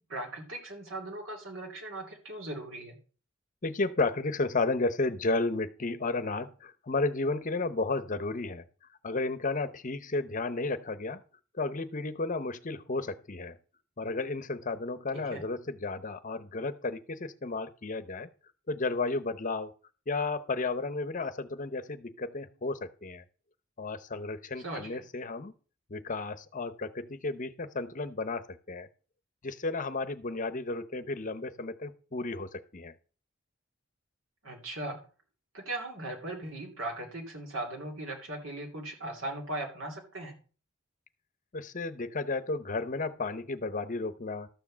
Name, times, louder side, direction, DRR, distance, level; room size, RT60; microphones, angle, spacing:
voice 1, 0.1-3.0 15.1-15.4 24.6-24.9 34.4-35.0 35.5-40.4, right 1 dB, 75° right, 2 dB, 2.8 m, -38 dB
voice 2, 3.6-8.6 9.0-11.2 11.6-13.6 14.0-18.3 18.7-19.7 20.1-23.2 23.8-25.5 25.9-28.9 29.4-32.9 41.5-44.5, left 3 dB, 40° left, 13 dB, 0.7 m, -33 dB
12.5 x 4.7 x 7.3 m, 0.38 s
head